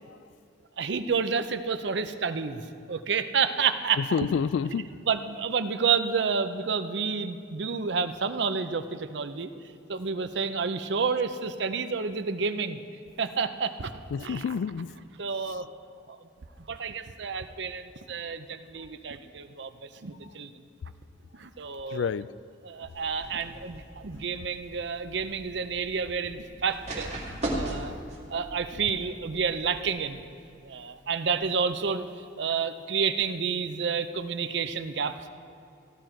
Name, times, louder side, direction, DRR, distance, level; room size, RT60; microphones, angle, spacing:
voice 1, 0.8-2.6 2.9-4.0 5.1-9.5 9.9-12.8 13.2-14.4 15.2-15.7 16.1-16.2 16.7-20.5 21.4-22.1 22.6-27.1 27.5-28.0 28.3-30.2 30.6-32.1 32.4-35.3, right 5 dB, 65° right, 10 dB, 0.6 m, -29 dB
voice 2, 4.0-4.9 14.1-14.9 15.4-15.6 21.9-22.3, left 6 dB, 75° left, 18 dB, 0.3 m, -29 dB
sound 1, 22.9-30.0, right 1 dB, 35° right, 2.3 m, -39 dB
15.5 x 12.5 x 4.4 m, 2.5 s
head